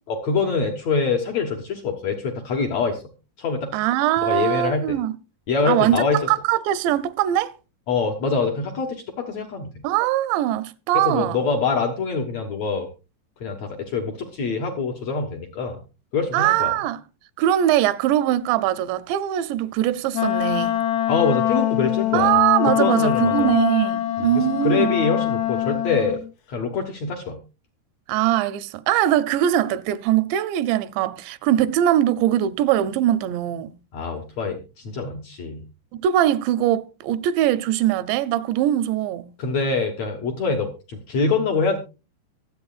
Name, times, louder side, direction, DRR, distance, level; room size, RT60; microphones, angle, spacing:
voice 1, 0.1-3.0 3.4-3.7 4.2-5.0 5.5-6.2 7.9-9.7 10.9-12.9 13.4-15.8 16.1-16.7 21.1-22.3 22.8-23.5 24.2-26.2 26.5-27.4 33.9-35.6 39.4-41.8, left 4 dB, 65° left, 1.6 m, -25 dB
voice 2, 3.7-5.1 5.7-7.5 9.8-11.4 16.3-17.0 17.4-20.8 22.1-24.9 28.1-33.8 35.9-39.3, right 12 dB, 85° right, 2.9 m, -21 dB
Wind instrument woodwind instrument, 20.1-26.2, left 12 dB, 85° left, 1.4 m, -23 dB
23.5 x 8.2 x 2.4 m
omnidirectional pair, 5.0 m